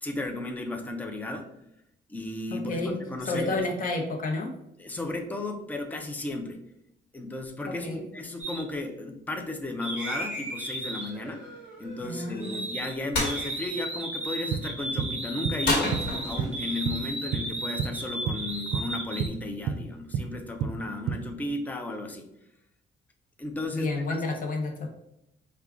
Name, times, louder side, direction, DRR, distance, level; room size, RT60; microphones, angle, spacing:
voice 1, 0.0-1.5 2.1-3.7 4.8-6.6 7.1-11.4 11.8-16.0 16.2-22.3 23.4-24.4, left 2 dB, 10° left, 4 dB, 0.4 m, -34 dB
voice 2, 2.5-4.5 7.7-8.0 12.0-12.6 23.7-24.9, left 2 dB, 50° left, 1 dB, 0.8 m, -31 dB
sound 1, 8.4-8.6 9.8-12.9 13.2-19.3, right 1 dB, 5° right, 1.1 m, -35 dB
sound 2, 13.1-13.4 15.6-16.6, left 2 dB, 70° left, 1.2 m, -27 dB
sound 3, 14.3-17.5 17.8-18.0 18.3-21.3, right 6 dB, 65° right, 0.4 m, -30 dB
4.6 x 2.3 x 3.6 m, 0.80 s
cardioid pair, 155°, 18 cm